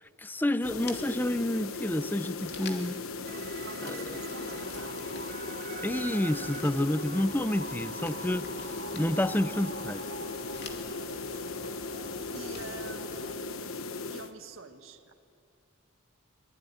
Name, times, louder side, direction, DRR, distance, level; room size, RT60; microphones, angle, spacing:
voice 1, 0.2-3.0 3.8-4.0 5.8-10.0, left 1 dB, 10° left, 15 dB, 0.5 m, -29 dB
sound 1, 0.6-14.3, left 3 dB, 75° left, 1.2 m, -38 dB
sound 2, 0.6-14.0, left 5 dB, 55° left, 2.7 m, -52 dB
sound 3, 3.2-13.4, right 5 dB, 50° right, 1.2 m, -45 dB
voice 2, 3.6-5.0 11.0-11.2 12.3-15.1, right 3 dB, 70° right, 7 dB, 1.6 m, -47 dB
23.5 x 20.5 x 10.0 m, 2.5 s
head